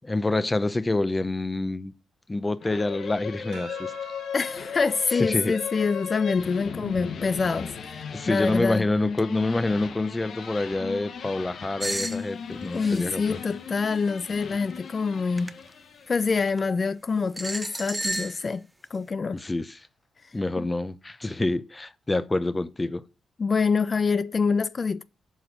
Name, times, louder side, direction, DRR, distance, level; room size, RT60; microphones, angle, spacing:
voice 1, 0.1-1.9 2.3-3.9 5.3-5.5 8.1-13.2 19.3-19.8 20.3-23.0, left 2 dB, 25° left, 0.8 m, -27 dB
sound 1, 2.6-16.2, left 6 dB, 70° left, 1.2 m, -37 dB
sound 2, 3.5-8.3 8.8-10.5 11.7-12.2, right 5 dB, 90° right, 1.7 m, -52 dB
voice 2, 4.3-8.8 12.7-15.6 16.1-18.6 18.9-19.4 20.6-20.7 23.4-25.0, left 5 dB, 45° left, 0.4 m, -26 dB
sound 3, 11.8-12.2 12.8-13.1 14.5-14.8 15.4-15.5 16.5-16.6 17.4-18.4, right 1 dB, 15° right, 0.8 m, -31 dB
7.5 x 5.1 x 6.3 m
supercardioid pair, 50°, 0 cm